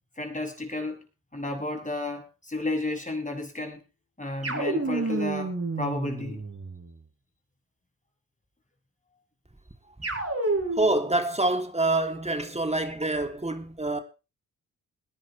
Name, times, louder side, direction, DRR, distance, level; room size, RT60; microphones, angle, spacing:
voice 1, 0.2-1.0 1.3-3.8 4.2-6.4, left 2 dB, 20° left, 7.4 m, -32 dB
sound 1, 4.4-6.9 10.0-11.1, right 2 dB, 35° right, 6.3 m, -30 dB
voice 2, 10.8-14.0, right 2 dB, 15° right, 3.2 m, -26 dB
21.5 x 10.5 x 3.4 m
supercardioid pair, 50°, 40 cm